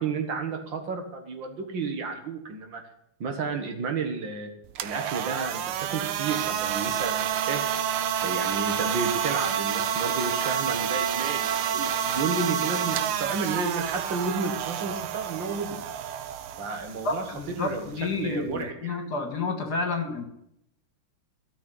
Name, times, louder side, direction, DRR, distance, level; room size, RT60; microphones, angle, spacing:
voice 1, 0.0-2.8 3.2-4.5 4.8-5.6 5.9-7.8 8.2-15.8 16.6-19.0, right 4 dB, 60° right, 5 dB, 2.2 m, -32 dB
sound 1, 4.6-18.7, right 9 dB, 85° right, 1.7 m, -29 dB
voice 2, 17.0-20.2, left 3 dB, 50° left, 5 dB, 2.2 m, -30 dB
13.0 x 6.4 x 9.9 m, 0.77 s
omnidirectional pair, 2.3 m